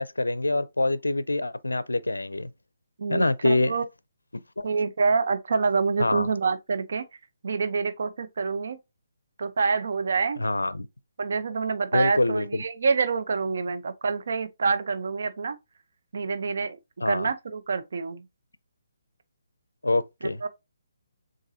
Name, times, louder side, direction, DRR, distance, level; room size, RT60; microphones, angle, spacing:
voice 1, 0.0-2.5 3.1-3.8 4.6-4.7 6.0-6.3 10.4-10.9 11.9-12.6 17.0-17.3 19.8-20.4, left 2 dB, 85° left, 0.4 m, -25 dB
voice 2, 3.0-3.8 4.6-7.0 7.4-8.8 9.4-10.4 11.2-15.6 16.1-16.8 17.0-18.2 20.4-20.5, right 4 dB, 60° right, 0.6 m, -26 dB
7.1 x 2.6 x 2.7 m
figure-of-eight pair, 140°, 0 cm